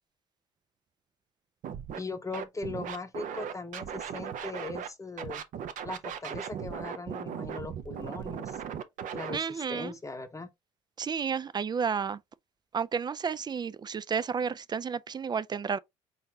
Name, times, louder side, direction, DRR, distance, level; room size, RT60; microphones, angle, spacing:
Scratching (performance technique), 1.6-2.0 2.3-4.9 5.2-9.4, right 8 dB, 60° right, 0.7 m, -37 dB
voice 1, 2.0-5.4 5.8-8.6 9.1-10.5, left 3 dB, 20° left, 0.8 m, -39 dB
voice 2, 9.3-9.9 11.0-12.2 12.7-15.8, right 6 dB, 30° right, 0.4 m, -31 dB
4.2 x 3.9 x 2.8 m
hypercardioid pair, 65°, 15 cm